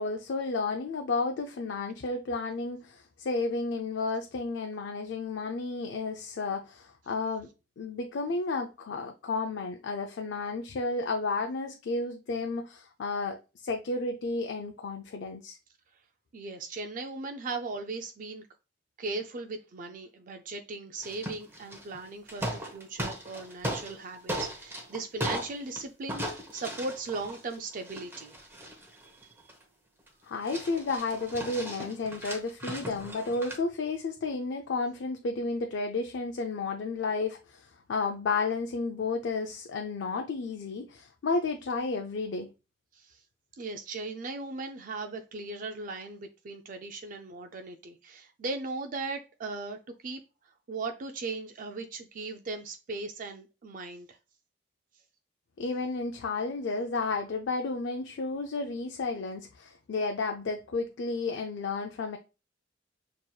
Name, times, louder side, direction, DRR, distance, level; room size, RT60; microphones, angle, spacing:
voice 1, 0.0-7.5 7.8-15.6 30.2-42.5 55.6-62.2, left 3 dB, 75° left, 0.4 m, -32 dB
voice 2, 16.3-18.5 19.0-28.7 42.9-43.2 43.6-50.2 50.7-54.2, right 3 dB, 45° right, 0.4 m, -38 dB
sound 1, 21.0-22.0 22.3-24.0 24.3-25.8 26.1-29.6 30.1-30.2 30.4-33.6, equal, 15° right, 0.8 m, -37 dB
6.3 x 2.9 x 2.2 m
head